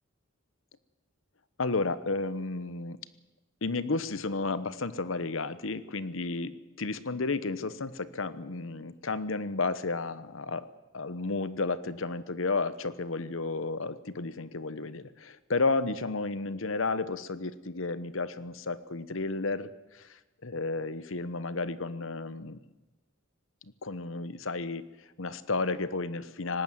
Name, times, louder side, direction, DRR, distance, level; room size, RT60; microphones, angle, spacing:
voice 1, 1.6-3.0 3.6-10.7 10.9-22.6 23.8-26.6, left 3 dB, 75° left, 15 dB, 1.0 m, -32 dB
19.0 x 18.0 x 9.1 m, 1.1 s
head